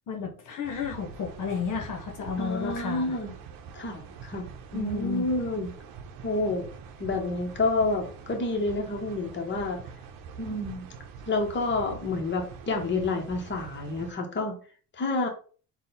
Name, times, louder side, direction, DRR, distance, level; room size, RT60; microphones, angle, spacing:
voice 1, 0.1-3.1 4.7-5.3, left 6 dB, 65° left, 2 dB, 1.0 m, -32 dB
sound 1, 0.6-14.1, right 6 dB, 80° right, 0.7 m, -44 dB
voice 2, 2.4-3.3 3.7-5.7 6.2-6.6 7.0-9.8 10.4-10.9 11.3-14.5 14.9-15.3, left 2 dB, 35° left, 2 dB, 1.2 m, -29 dB
3.8 x 2.4 x 4.2 m, 0.41 s
cardioid pair, 85°, 34 cm